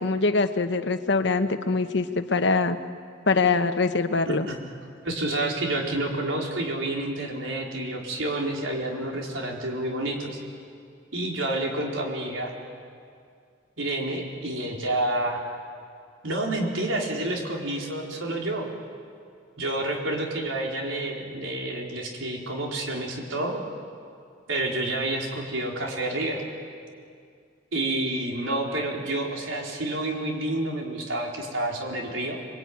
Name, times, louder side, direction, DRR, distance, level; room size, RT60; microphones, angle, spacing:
voice 1, 0.0-2.8 3.3-4.5, left 3 dB, 65° left, 9 dB, 1.2 m, -23 dB
voice 2, 4.3-4.6 5.0-10.4 11.1-12.5 13.8-15.4 16.2-18.7 19.6-23.6 24.5-26.4 27.7-32.4, right 1 dB, 90° right, 0 dB, 4.4 m, -29 dB
27.0 x 22.0 x 9.6 m, 2.3 s
head